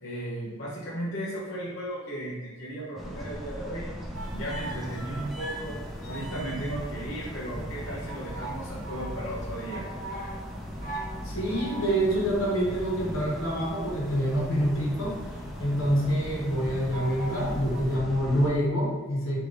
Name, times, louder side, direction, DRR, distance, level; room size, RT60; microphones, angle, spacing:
voice 1, 0.0-3.9 4.3-5.8 6.1-9.9, right 1 dB, 65° left, -8 dB, 1.0 m, -35 dB
sound 1, 3.0-18.5, equal, ahead, 0.5 m, -38 dB
sound 2, 4.1-17.9, right 1 dB, 45° left, 1.2 m, -42 dB
voice 2, 11.2-15.2 15.6-19.4, equal, 90° left, -5 dB, 1.4 m, -26 dB
3.4 x 3.0 x 3.9 m, 1.4 s
head